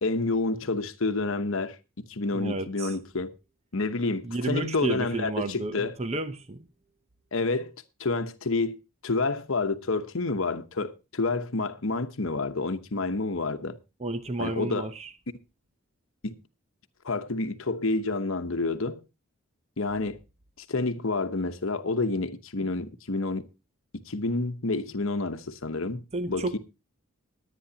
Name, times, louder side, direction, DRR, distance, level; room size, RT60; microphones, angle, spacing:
voice 1, 0.0-3.3 3.7-6.0 7.3-7.7 8.0-8.8 9.0-13.8 14.4-14.9 16.2-16.4 17.0-19.0 19.8-20.2 20.7-23.5 24.0-26.0 26.3-26.6, left 3 dB, 60° left, 1.0 m, -29 dB
voice 2, 2.3-3.0 4.2-6.6 14.0-15.1 26.1-26.6, right 2 dB, 30° right, 0.7 m, -32 dB
20.5 x 9.3 x 2.8 m
head